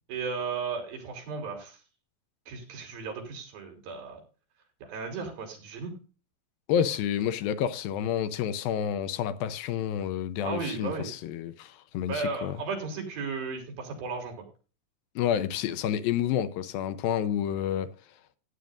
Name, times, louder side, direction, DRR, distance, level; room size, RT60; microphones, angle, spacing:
voice 1, 0.1-1.8 2.5-4.2 4.8-5.9 10.4-11.1 12.1-14.4, right 4 dB, 75° right, 5.0 m, -35 dB
voice 2, 6.7-12.6 15.2-17.9, left 9 dB, 85° left, 2.5 m, -29 dB
16.5 x 9.4 x 2.5 m
omnidirectional pair, 4.2 m